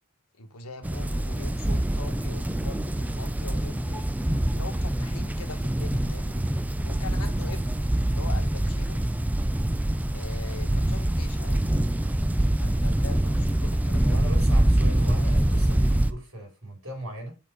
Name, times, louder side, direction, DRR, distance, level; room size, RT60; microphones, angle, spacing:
voice 1, 0.4-4.2 4.5-6.5 6.8-7.8 8.0-9.0 10.1-11.7 12.6-14.2, left 3 dB, 90° left, 1.4 m, -42 dB
sound 1, 0.8-16.1, right 1 dB, 5° right, 0.3 m, -25 dB
voice 2, 14.0-17.4, right 1 dB, 60° right, 4.1 m, -37 dB
7.3 x 4.5 x 5.1 m
head